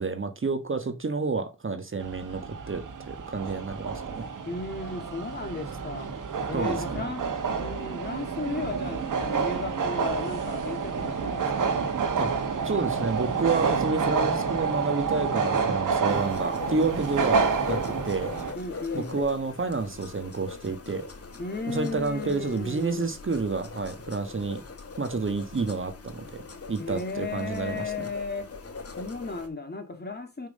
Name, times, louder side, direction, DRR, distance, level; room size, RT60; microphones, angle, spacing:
voice 1, 0.0-4.3 6.5-7.1 12.2-12.3 12.6-17.8 18.0-18.3 18.9-21.0 21.7-24.6 25.0-26.4 26.7-27.9, right 4 dB, 40° right, 1.3 m, -29 dB
sound 1, 2.0-18.5, right 5 dB, 75° right, 1.7 m, -29 dB
voice 2, 4.4-11.9 18.5-19.2 21.4-23.1 26.8-28.5 29.0-30.5, left 3 dB, 30° left, 2.5 m, -35 dB
sound 2, 16.1-29.5, left 4 dB, 45° left, 2.0 m, -41 dB
5.8 x 5.6 x 5.3 m
cardioid pair, 60°, 32 cm